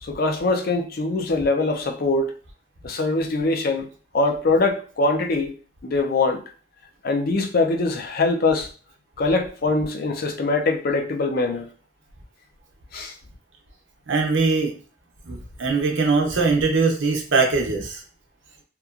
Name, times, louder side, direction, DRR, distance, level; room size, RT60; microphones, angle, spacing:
voice 1, 0.0-2.3 2.8-3.9 4.1-5.6 5.8-6.4 7.0-8.7 9.2-11.7 12.9-13.1, left 3 dB, 55° left, 0.5 m, -22 dB
voice 2, 14.1-14.7 15.3-18.0, right 4 dB, 90° right, 0.7 m, -21 dB
3.0 x 2.2 x 2.4 m
head